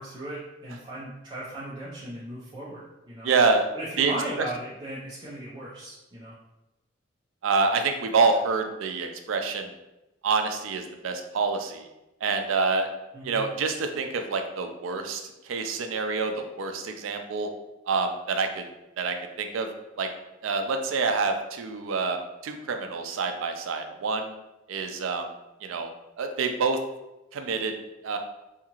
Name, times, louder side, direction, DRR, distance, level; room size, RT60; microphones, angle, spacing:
voice 1, 0.0-3.3 3.7-6.4 13.1-13.4, right 1 dB, 25° right, -8 dB, 0.5 m, -37 dB
voice 2, 3.2-3.7 4.0-4.1 7.4-9.7 10.2-11.9 12.2-12.9 13.2-17.5 17.9-18.6 19.0-19.7 20.0-20.1 20.4-24.3 24.7-25.3 25.6-25.9 26.2-26.8 27.3-27.7 28.0-28.2, right 4 dB, 85° right, 6 dB, 0.4 m, -27 dB
2.8 x 2.4 x 2.9 m, 0.98 s
head